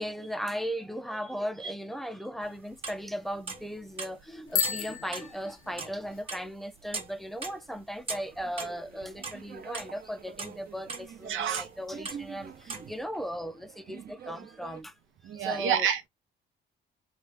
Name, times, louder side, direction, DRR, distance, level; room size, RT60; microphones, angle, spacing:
voice 1, 0.0-14.9 15.3-15.9, equal, ahead, 0.5 m, -37 dB
sound 1, 2.4-3.0 3.5-4.2 4.6-6.0 6.3-7.1 7.4-8.9 9.2-10.0 10.4-11.1 11.5-11.8 12.0-12.9, right 4 dB, 30° right, 1.2 m, -39 dB
Bicycle bell, 4.5-6.2, left 8 dB, 85° left, 0.7 m, -33 dB
sound 2, 8.2-14.8, right 7 dB, 50° right, 0.8 m, -47 dB
voice 2, 11.3-11.7 15.2-16.1, right 8 dB, 80° right, 0.7 m, -28 dB
3.1 x 2.2 x 3.3 m
cardioid pair, 90°, 20 cm